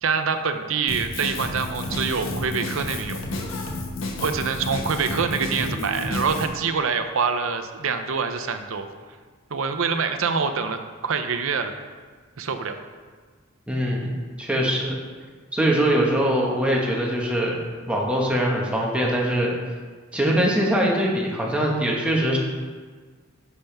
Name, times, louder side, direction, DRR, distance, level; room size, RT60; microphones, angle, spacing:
voice 1, 0.0-3.2 4.2-8.9 9.5-11.7 12.4-12.8, right 5 dB, 75° right, 8 dB, 0.7 m, -25 dB
Drum kit, 0.9-6.5, left 1 dB, 75° left, 1.3 m, -31 dB
voice 2, 13.7-14.9 15.5-17.6 17.9-19.5 20.1-22.4, right 1 dB, 5° right, -3 dB, 1.5 m, -22 dB
11.0 x 7.0 x 3.5 m, 1.5 s
head